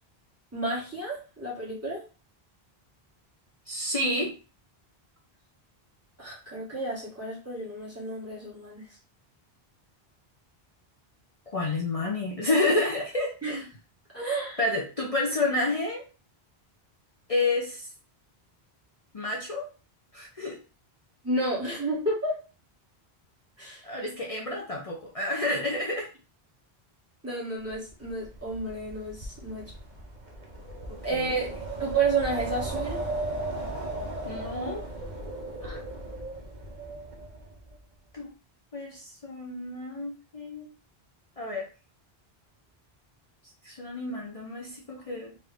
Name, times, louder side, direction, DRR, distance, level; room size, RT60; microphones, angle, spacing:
voice 1, 0.5-2.0 6.2-8.9 13.4-13.6 14.1-14.6 21.2-22.4 23.6-23.9 27.2-29.7 31.0-33.1 35.6-35.8, right 2 dB, 15° right, -6 dB, 1.6 m, -31 dB
voice 2, 3.7-4.4 11.5-13.3 14.6-16.0 17.3-17.9 19.1-19.7 20.1-20.6 23.8-26.1 30.9-31.4 34.2-34.8 38.1-38.3 38.7-40.7 41.4-41.7 43.6-45.4, left 2 dB, 40° left, -2 dB, 0.7 m, -29 dB
Wind, 27.7-37.8, right 2 dB, 50° right, 0.9 m, -36 dB
4.1 x 2.7 x 3.4 m, 0.34 s
omnidirectional pair, 1.0 m